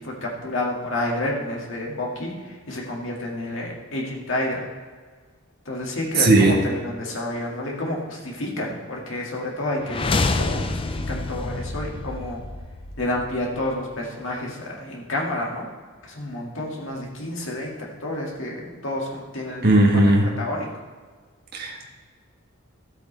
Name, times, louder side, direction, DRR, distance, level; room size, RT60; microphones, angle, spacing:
voice 1, 0.0-4.7 5.7-12.4 13.0-15.7 16.0-17.7 18.0-19.9 20.4-20.7, left 1 dB, 60° left, -2 dB, 2.1 m, -29 dB
voice 2, 6.2-6.5 19.6-20.3 21.5-21.9, right 2 dB, 50° right, 0 dB, 1.5 m, -16 dB
sound 1, 9.8-13.8, left 3 dB, 25° left, 0.5 m, -28 dB
13.0 x 8.2 x 3.3 m, 1.5 s
head